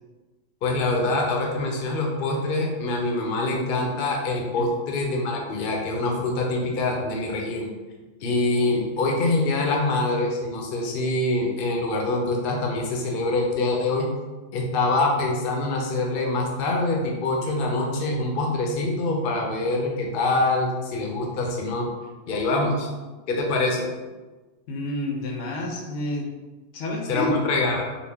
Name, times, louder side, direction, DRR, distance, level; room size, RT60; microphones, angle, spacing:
voice 1, 0.6-7.7 8.2-14.1 14.5-21.9 22.3-22.9 23.3-23.9 27.1-27.8, left 2 dB, 55° left, 0 dB, 0.7 m, -25 dB
voice 2, 24.7-26.3 26.7-27.4, left 1 dB, 80° left, 1 dB, 1.0 m, -29 dB
3.9 x 2.1 x 3.3 m, 1.2 s
omnidirectional pair, 1.3 m